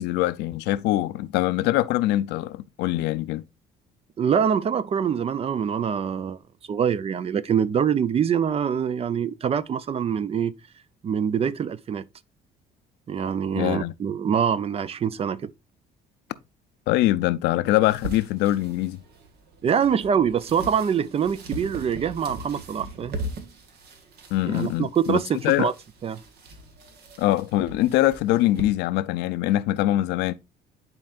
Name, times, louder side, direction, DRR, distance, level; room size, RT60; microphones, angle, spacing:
voice 1, 0.0-3.4 13.5-13.9 16.9-19.0 24.3-25.2 25.4-25.7 27.2-30.3, left 15 dB, 90° left, 0.5 m, -23 dB
voice 2, 4.2-6.4 6.7-10.5 11.0-12.1 13.1-15.5 19.6-23.2 24.4-25.7 26.0-26.2, right 7 dB, 35° right, 0.5 m, -24 dB
sound 1, 17.9-28.6, right 1 dB, 70° right, 1.7 m, -40 dB
10.5 x 4.5 x 2.4 m
cardioid pair, 110°, 17 cm